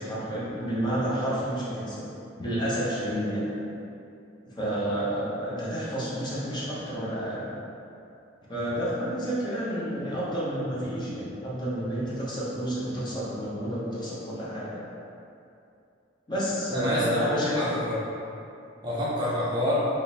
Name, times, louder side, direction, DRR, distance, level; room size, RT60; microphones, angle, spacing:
voice 1, 0.0-2.0 2.4-3.5 4.5-7.5 8.5-14.9 16.3-17.6, equal, 25° left, -8 dB, 0.7 m, -30 dB
voice 2, 16.7-18.1 18.8-19.7, left 1 dB, 20° right, -8 dB, 0.5 m, -28 dB
3.5 x 2.5 x 2.8 m, 2.6 s
head